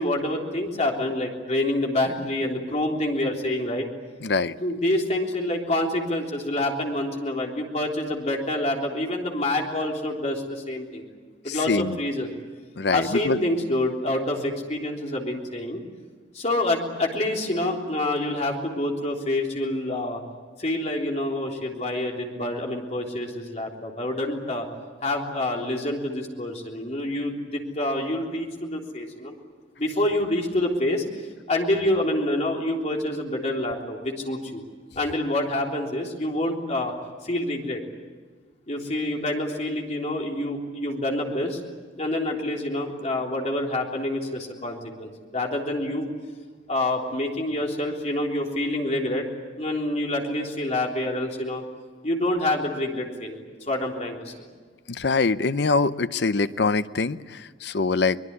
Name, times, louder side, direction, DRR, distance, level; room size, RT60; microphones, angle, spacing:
voice 1, 0.0-3.9 4.6-11.0 11.4-12.3 12.9-15.8 16.3-20.2 20.6-24.7 25.0-29.3 29.8-31.0 31.5-34.6 34.9-36.9 37.2-37.8 38.7-41.6 42.0-46.1 46.7-49.3 49.6-51.6 52.0-54.3, left 1 dB, 35° left, 0 dB, 3.6 m, -27 dB
voice 2, 4.2-4.5 11.5-12.0 12.8-13.4 54.9-58.2, left 4 dB, 60° left, 13 dB, 0.7 m, -24 dB
23.5 x 21.5 x 9.6 m, 1.5 s
head